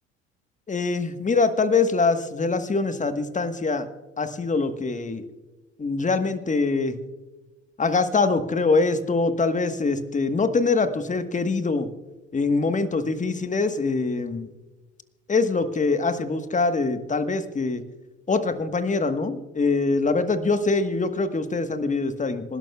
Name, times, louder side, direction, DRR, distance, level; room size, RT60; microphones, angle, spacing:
voice 1, 0.7-3.9 4.2-5.2 5.8-7.0 7.8-11.9 12.3-14.5 15.3-17.8 18.3-22.6, left 3 dB, 20° left, 10 dB, 1.3 m, -24 dB
26.5 x 12.0 x 2.3 m, 1.2 s
hypercardioid pair, 65°, 35 cm